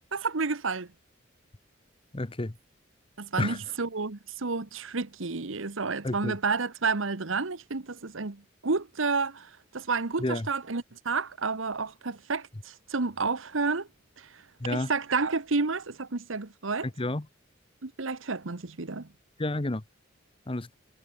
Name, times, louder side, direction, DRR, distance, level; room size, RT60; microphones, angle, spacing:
voice 1, 0.1-0.9 3.2-9.5 9.7-13.9 14.7-16.9 17.8-19.1, right 4 dB, 80° right, 1.2 m, -30 dB
voice 2, 2.1-2.5 3.4-3.6 6.0-6.4 10.2-10.5 14.6-14.9 17.0-17.3 19.4-19.8 20.5-20.7, left 2 dB, 25° left, 0.9 m, -30 dB
head